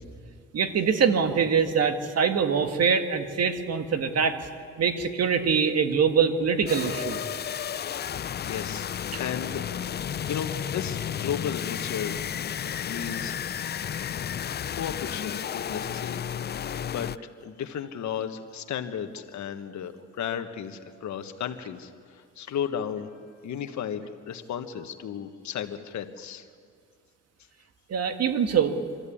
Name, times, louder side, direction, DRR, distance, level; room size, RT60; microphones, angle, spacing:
voice 1, 0.5-4.4 4.8-7.2 9.1-9.2 27.9-28.8, right 6 dB, 55° right, 7 dB, 1.8 m, -24 dB
sound 1, 6.7-17.2, left 9 dB, 35° left, 0.4 m, -32 dB
voice 2, 8.1-9.6 10.3-13.4 13.6-13.7 14.7-16.2 16.5-23.1 23.4-26.4, left 8 dB, 70° left, 8 dB, 1.5 m, -34 dB
25.5 x 13.5 x 8.6 m, 2.1 s
cardioid pair, 90°, 30 cm